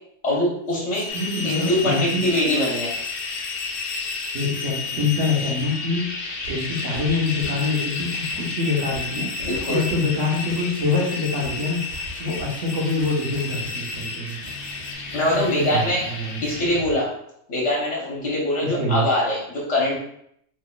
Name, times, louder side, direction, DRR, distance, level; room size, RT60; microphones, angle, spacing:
voice 1, 0.2-1.1 1.4-3.0 9.4-9.8 15.1-16.0 16.4-17.1 17.5-20.0, left 1 dB, 65° left, -3 dB, 1.3 m, -23 dB
sound 1, 0.7-14.9, left 5 dB, 90° left, 1.0 m, -33 dB
sound 2, 1.1-16.8, left 3 dB, 50° left, 0.9 m, -35 dB
voice 2, 1.1-2.3 4.3-14.4 15.3-16.4 18.6-19.0, left 3 dB, 80° right, -3 dB, 1.4 m, -25 dB
sound 3, 6.4-7.6 8.0-8.6 8.9-10.1 10.5-11.0 11.4-12.6 13.0-16.9, equal, 60° right, 1.9 m, -41 dB
5.0 x 3.9 x 2.2 m, 0.72 s
omnidirectional pair, 1.3 m